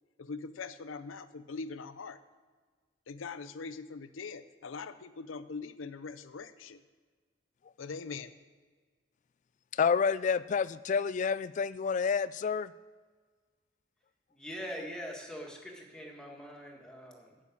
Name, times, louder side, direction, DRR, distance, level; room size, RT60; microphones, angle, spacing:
voice 1, 0.2-2.2 3.1-6.8 7.8-8.3, left 4 dB, 85° left, 13 dB, 0.6 m, -42 dB
voice 2, 9.7-12.7, left 6 dB, 40° left, 17 dB, 0.3 m, -29 dB
voice 3, 14.3-17.4, equal, 5° left, -1 dB, 1.8 m, -43 dB
11.0 x 6.5 x 8.6 m, 1.5 s
head